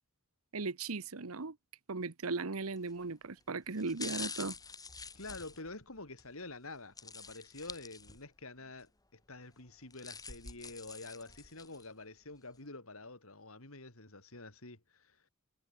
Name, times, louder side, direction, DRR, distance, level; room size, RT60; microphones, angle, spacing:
voice 1, 0.5-1.6 1.9-4.5, right 3 dB, 75° right, 1.1 m, -37 dB
sound 1, 2.8-3.0 3.7-6.3 7.0-8.4 8.8-8.9 9.7-11.9 12.3-12.4, left 5 dB, 15° left, 3.6 m, -46 dB
voice 2, 5.1-15.2, left 2 dB, 70° left, 4.2 m, -48 dB
head